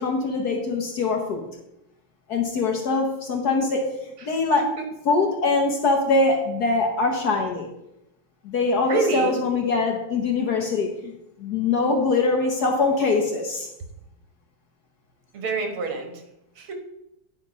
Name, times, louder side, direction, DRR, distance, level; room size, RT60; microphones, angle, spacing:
voice 1, 0.0-1.5 2.3-3.9 4.2-4.6 5.1-7.7 8.4-11.1 11.4-13.7, left 3 dB, 55° left, 2 dB, 1.2 m, -23 dB
voice 2, 8.8-9.4 15.3-16.2 16.6-16.7, right 3 dB, 75° right, 4 dB, 2.1 m, -27 dB
10.0 x 4.6 x 4.9 m, 0.87 s
omnidirectional pair, 2.4 m